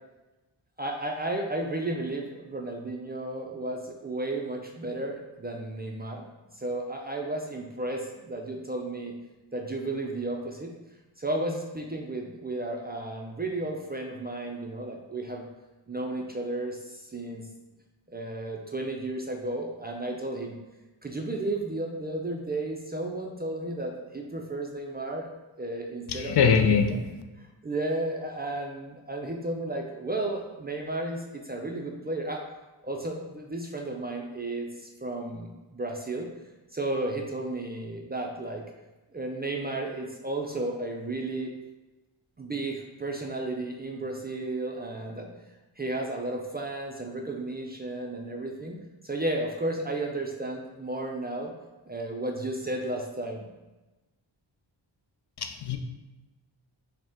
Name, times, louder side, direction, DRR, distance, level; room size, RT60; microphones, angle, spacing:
voice 1, 0.8-6.3 6.6-9.1 9.5-10.7 11.2-15.5 15.9-17.4 18.1-20.6 21.0-25.3 25.6-27.0 27.6-32.4 32.8-36.3 36.7-38.6 39.1-41.5 42.4-45.3 45.8-48.8 49.0-51.5 51.8-53.5, right 2 dB, 25° right, 0 dB, 0.3 m, -33 dB
voice 2, 26.1-27.0 55.4-55.8, left 6 dB, 60° left, 6 dB, 0.5 m, -22 dB
5.1 x 2.1 x 3.5 m, 1.1 s
wide cardioid pair, 90°, 47 cm